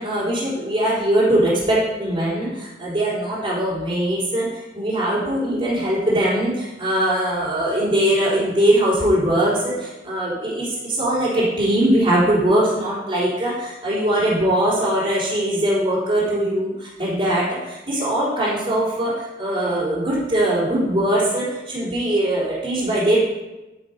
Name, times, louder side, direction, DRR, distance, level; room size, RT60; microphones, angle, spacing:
voice 1, 0.0-23.3, right 1 dB, 30° right, -9 dB, 3.8 m, -21 dB
10.5 x 9.3 x 5.2 m, 1.0 s
head